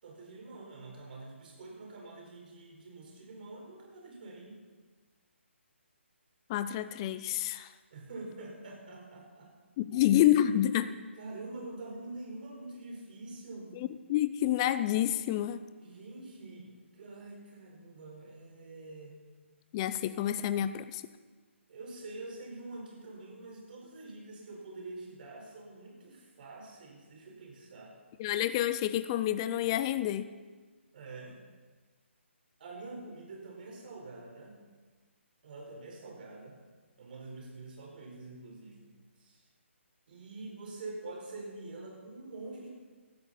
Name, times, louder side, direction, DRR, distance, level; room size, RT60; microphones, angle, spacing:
voice 1, 0.0-4.6 7.9-9.5 9.9-10.1 11.2-13.8 15.8-19.2 21.7-27.9 30.9-31.4 32.6-34.6 35.4-36.6 37.0-38.9 39.2-39.4 40.1-42.7, right 2 dB, 45° right, -1 dB, 4.6 m, -46 dB
voice 2, 6.5-7.7 9.8-10.9 13.8-15.6 19.7-21.0 28.2-30.3, left 12 dB, 20° left, 12 dB, 0.4 m, -28 dB
16.5 x 13.0 x 4.3 m, 1.4 s
hypercardioid pair, 155°, 7 cm